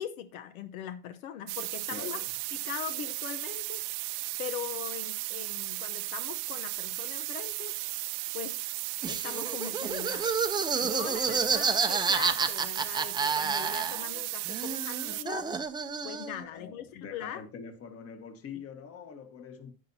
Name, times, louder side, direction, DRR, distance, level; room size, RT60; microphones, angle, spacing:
voice 1, 0.0-2.2 2.5-3.8 4.4-7.8 8.3-8.6 9.1-10.3 10.8-15.5 16.0-17.4, left 10 dB, 85° left, 1.0 m, -40 dB
sound 1, 1.5-15.2, right 19 dB, 65° right, 0.8 m, -35 dB
voice 2, 1.9-2.2 10.8-11.5 16.4-19.7, left 6 dB, 35° left, 1.4 m, -45 dB
Laughter, 9.0-14.2 14.5-16.4, right 5 dB, 10° right, 0.6 m, -30 dB
10.5 x 9.3 x 2.7 m
supercardioid pair, 125°, 41 cm